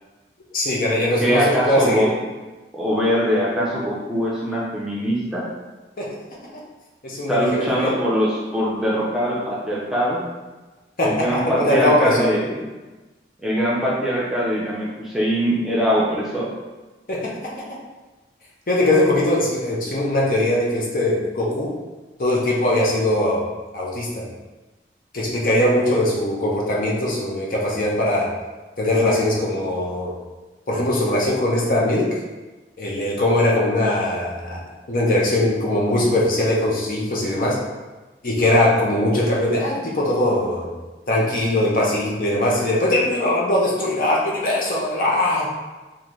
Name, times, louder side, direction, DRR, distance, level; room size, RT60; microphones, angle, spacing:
voice 1, 0.5-2.1 6.0-6.2 6.5-6.6 7.0-7.9 11.0-12.4 17.1-17.8 18.7-21.7 22.2-23.5 23.7-24.3 25.1-28.3 28.8-30.1 30.7-32.1 32.8-37.6 38.2-40.7 41.1-45.5, left 1 dB, 50° left, -4 dB, 0.7 m, -21 dB
voice 2, 1.2-2.1 2.7-5.4 7.3-10.2 11.0-12.5 13.4-16.5, equal, ahead, -7 dB, 0.6 m, -22 dB
3.8 x 2.7 x 3.1 m, 1.2 s
head